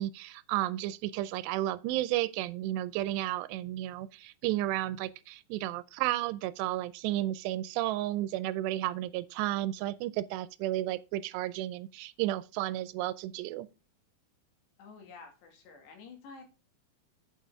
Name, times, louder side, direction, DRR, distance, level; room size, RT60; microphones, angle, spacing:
voice 1, 0.0-13.7, right 15 dB, 85° right, 2.7 m, -32 dB
voice 2, 14.8-16.4, left 4 dB, 90° left, 4.5 m, -50 dB
8.9 x 5.4 x 4.9 m
omnidirectional pair, 4.8 m